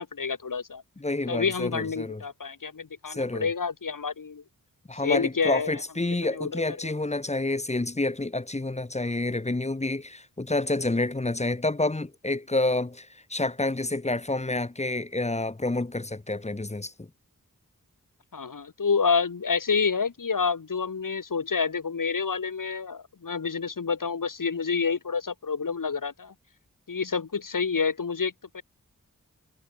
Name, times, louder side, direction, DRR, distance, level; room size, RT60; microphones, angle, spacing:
voice 1, 0.0-0.8 1.3-4.4 5.0-5.8 6.3-6.9 18.3-26.3 26.9-28.6, left 5 dB, 65° left, 1.7 m, -28 dB
voice 2, 1.0-2.2 3.1-3.5 4.9-17.1, left 2 dB, 20° left, 0.9 m, -28 dB
wide cardioid pair, 60°, 35 cm